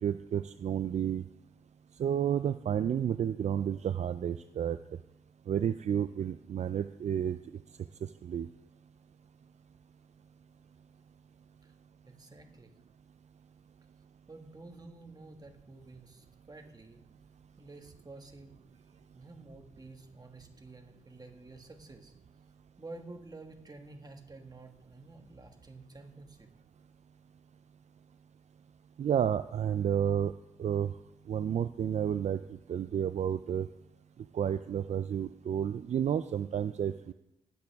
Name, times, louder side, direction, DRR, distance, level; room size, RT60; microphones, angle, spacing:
voice 1, 0.0-1.2 2.0-4.8 5.5-7.4 8.2-8.5 29.0-30.3 30.6-30.9 31.3-33.7 34.3-37.1, right 9 dB, 60° right, 12 dB, 0.4 m, -31 dB
voice 2, 12.1-12.7 14.3-17.0 17.6-18.6 18.9-22.1 22.8-26.5, right 2 dB, 30° right, 4 dB, 1.7 m, -50 dB
18.5 x 7.9 x 3.5 m, 0.90 s
cardioid pair, 60°, 13 cm